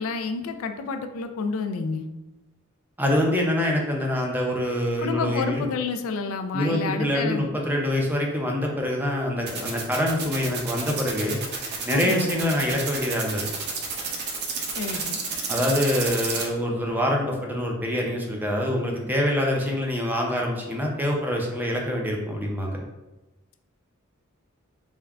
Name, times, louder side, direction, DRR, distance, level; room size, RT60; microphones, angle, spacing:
voice 1, 0.0-2.1 5.0-7.5 11.9-12.6 14.8-15.2, left 4 dB, 75° left, 7 dB, 0.3 m, -29 dB
voice 2, 3.0-5.7 6.5-11.4 11.8-13.5 15.5-22.8, left 1 dB, 10° right, -1 dB, 0.5 m, -25 dB
sound 1, 9.5-16.4, right 5 dB, 50° right, 0.6 m, -30 dB
3.5 x 2.2 x 3.4 m, 1.0 s
head